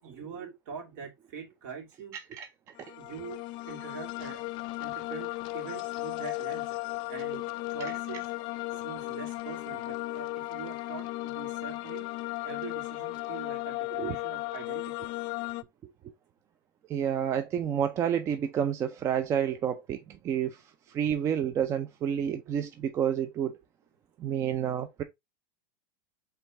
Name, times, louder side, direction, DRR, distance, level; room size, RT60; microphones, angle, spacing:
voice 1, 0.0-2.2 3.0-4.4 4.8-6.7 7.1-7.4 7.7-8.3 8.7-12.0 12.4-15.1, right 6 dB, 55° right, 2.2 m, -43 dB
sound 1, 2.8-15.6, left 20 dB, 40° left, 0.4 m, -35 dB
voice 2, 16.9-20.6 20.9-23.6 24.2-25.0, right 9 dB, 25° right, 0.4 m, -29 dB
4.5 x 3.3 x 3.3 m
supercardioid pair, 135°, 11 cm